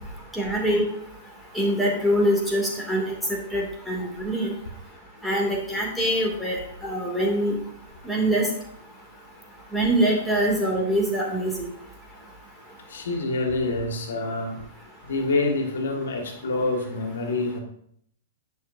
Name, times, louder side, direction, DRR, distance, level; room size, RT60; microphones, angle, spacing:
voice 1, 0.3-0.8 1.5-3.1 3.5-4.5 5.2-6.6 6.8-7.5 8.0-8.4 9.7-11.7, right 1 dB, ahead, -3 dB, 2.5 m, -24 dB
voice 2, 12.9-14.5 15.1-17.6, left 2 dB, 80° left, 2 dB, 1.8 m, -26 dB
10.0 x 6.2 x 2.7 m, 0.67 s
hypercardioid pair, 125°, 0 cm